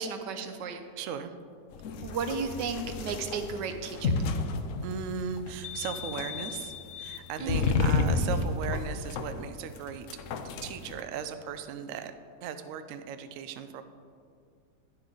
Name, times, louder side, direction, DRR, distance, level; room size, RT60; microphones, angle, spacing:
voice 1, 0.0-0.9 2.0-4.1 7.4-7.7, right 5 dB, 85° right, 8 dB, 1.3 m, -34 dB
voice 2, 0.9-1.3 4.8-10.2 10.6-13.8, right 7 dB, 70° right, 9 dB, 0.7 m, -37 dB
sound 1, 1.7-11.0, left 4 dB, 75° left, 0.7 m, -32 dB
sound 2, 4.0-8.4, left 3 dB, 55° left, 1.0 m, -35 dB
10.0 x 7.1 x 3.8 m, 2.2 s
omnidirectional pair, 1.8 m